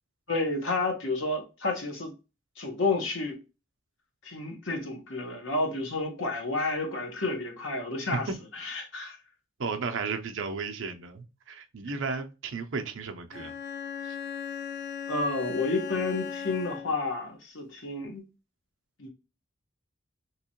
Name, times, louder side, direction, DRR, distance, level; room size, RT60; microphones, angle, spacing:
voice 1, 0.3-2.1 2.6-3.4 4.2-8.3 8.6-9.2 15.1-18.2 19.0-19.1, left 3 dB, 65° left, 1.1 m, -30 dB
voice 2, 9.6-13.5 14.0-14.2, right 4 dB, 65° right, 0.5 m, -34 dB
Bowed string instrument, 13.3-17.1, left 7 dB, 45° left, 0.4 m, -37 dB
3.5 x 3.0 x 2.8 m
head